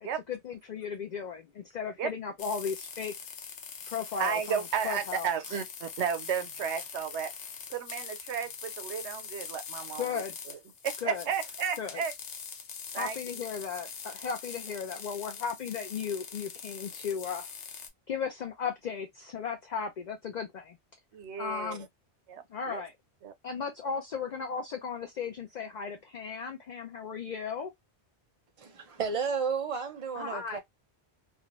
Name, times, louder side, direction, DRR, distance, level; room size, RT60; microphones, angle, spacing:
voice 1, 0.0-3.1 3.9-4.6 4.8-5.3 10.0-10.4 11.0-11.2 11.8-12.0 13.0-17.5 18.1-20.8 21.4-21.9 22.5-22.9 23.4-27.7 30.2-30.6, left 6 dB, 55° left, 0.5 m, -36 dB
sound 1, 2.4-17.9, left 6 dB, 85° left, 1.0 m, -43 dB
voice 2, 4.2-7.3 7.7-10.6 10.8-12.1 12.9-13.2 21.1-21.8 22.3-22.8 23.2-23.3, right 7 dB, 85° right, 0.9 m, -33 dB
voice 3, 28.6-30.6, right 5 dB, 35° right, 0.6 m, -32 dB
2.5 x 2.2 x 2.9 m
omnidirectional pair, 1.1 m